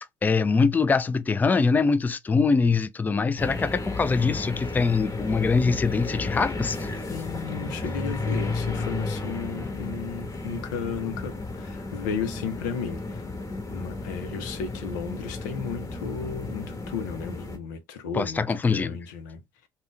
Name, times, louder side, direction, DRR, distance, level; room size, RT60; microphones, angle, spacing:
voice 1, 0.2-7.0 18.1-19.0, left 4 dB, 20° left, 0.3 m, -23 dB
sound 1, 3.4-17.6, left 3 dB, 35° left, 1.1 m, -33 dB
voice 2, 7.1-13.3 13.7-19.4, left 6 dB, 90° left, 0.6 m, -34 dB
2.4 x 2.2 x 3.6 m
hypercardioid pair, 65°, 10 cm